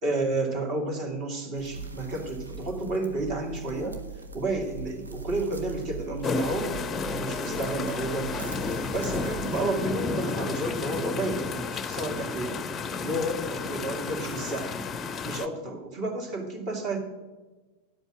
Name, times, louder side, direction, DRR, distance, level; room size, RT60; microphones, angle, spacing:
voice 1, 0.0-4.0 4.3-6.7 7.1-12.6 13.0-14.8 15.2-17.0, right 2 dB, 40° right, 3 dB, 2.4 m, -31 dB
sound 1, 1.5-9.6, right 4 dB, 75° right, 1.0 m, -41 dB
sound 2, 6.2-15.5, left 4 dB, 20° left, 0.6 m, -32 dB
11.0 x 7.9 x 6.1 m, 1.2 s
figure-of-eight pair, 90°, 0 cm